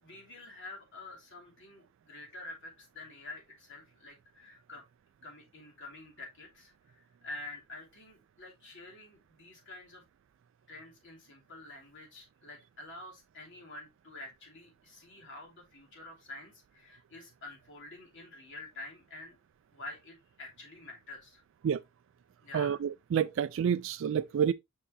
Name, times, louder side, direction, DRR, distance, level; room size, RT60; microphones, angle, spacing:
voice 1, 0.0-4.8 5.2-10.0 10.7-19.4 19.7-21.4 22.4-22.8, left 2 dB, 65° left, 2.9 m, -48 dB
voice 2, 22.5-24.5, right 8 dB, 65° right, 0.3 m, -29 dB
6.8 x 5.6 x 2.6 m
head